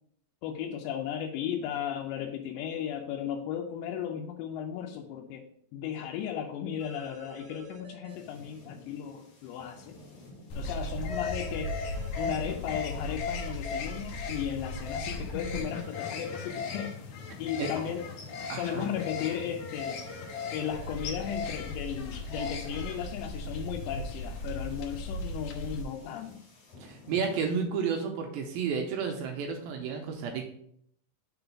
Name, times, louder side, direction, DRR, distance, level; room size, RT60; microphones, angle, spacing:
voice 1, 0.4-5.5 5.7-10.0 10.5-11.8 12.2-17.0 17.4-18.1 18.5-20.1 20.5-26.4, left 9 dB, 85° left, 2 dB, 2.8 m, -35 dB
sound 1, 6.8-8.1 11.1-12.5 15.4-16.8 19.8-21.1, right 3 dB, 65° right, 1.9 m, -48 dB
sound 2, 8.1-27.6, left 2 dB, 45° left, 2.8 m, -54 dB
sound 3, 10.5-25.8, left 3 dB, 70° left, 2.1 m, -36 dB
voice 2, 18.5-18.9 26.8-30.4, right 6 dB, 80° right, 3 dB, 2.2 m, -32 dB
6.1 x 3.9 x 5.8 m, 0.68 s
omnidirectional pair, 4.9 m